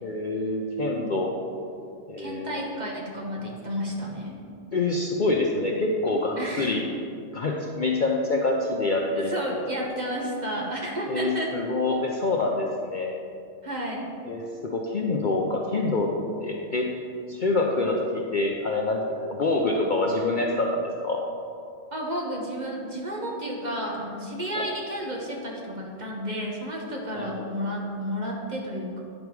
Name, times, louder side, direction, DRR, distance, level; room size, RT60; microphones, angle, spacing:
voice 1, 0.0-1.3 2.1-2.6 4.7-6.8 7.3-9.3 11.1-13.1 14.2-16.1 16.4-16.9 17.3-17.9 18.3-19.0 19.3-21.2 27.2-27.5, left 2 dB, 50° left, 0 dB, 0.6 m, -26 dB
voice 2, 2.2-4.4 6.4-6.7 9.1-11.5 13.6-14.1 21.9-29.0, equal, 35° right, -2 dB, 1.1 m, -32 dB
9.5 x 5.3 x 4.7 m, 2.5 s
omnidirectional pair, 1.3 m